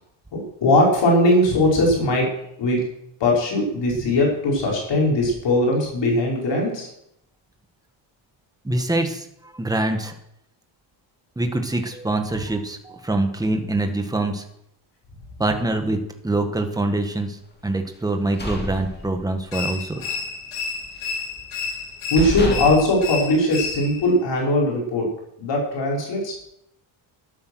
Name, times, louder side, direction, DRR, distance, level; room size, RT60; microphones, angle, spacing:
voice 1, 0.3-2.3 2.6-2.8 3.2-6.9 22.1-25.1 25.4-26.4, left 1 dB, 60° left, -2 dB, 5.3 m, -20 dB
voice 2, 8.6-10.1 11.3-14.4 15.4-20.0, right 2 dB, 10° right, 5 dB, 1.6 m, -25 dB
sound 1, 18.0-19.6 20.0-20.2 20.6-21.3 21.8-21.9 22.2-24.0, left 1 dB, 20° left, 2.8 m, -30 dB
sound 2, 19.5-24.1, left 5 dB, 80° left, 5.2 m, -31 dB
12.5 x 10.5 x 6.4 m, 0.77 s
cardioid pair, 130°, 47 cm